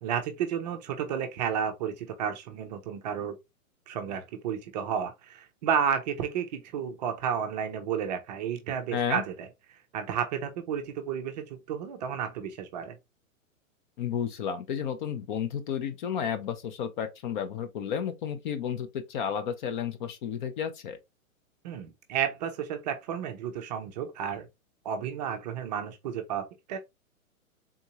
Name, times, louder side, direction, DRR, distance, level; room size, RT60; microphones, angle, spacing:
voice 1, 0.0-3.3 3.9-9.5 9.9-13.0 21.6-24.5 24.8-26.8, right 8 dB, 30° right, 0.5 m, -32 dB
voice 2, 8.9-9.2 14.0-21.0, left 8 dB, 35° left, 0.6 m, -32 dB
3.7 x 2.7 x 2.8 m
hypercardioid pair, 130°, 43 cm